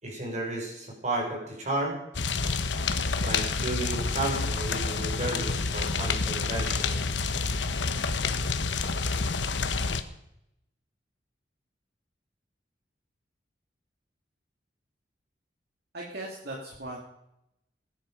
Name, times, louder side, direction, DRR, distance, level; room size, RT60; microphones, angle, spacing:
voice 1, 0.0-2.0 3.2-7.0, right 2 dB, 40° right, 0 dB, 5.2 m, -33 dB
sound 1, 2.1-10.0, left 4 dB, 90° left, 1.1 m, -28 dB
voice 2, 15.9-17.0, right 1 dB, 60° right, -2 dB, 2.4 m, -38 dB
19.0 x 10.5 x 5.2 m, 0.82 s
head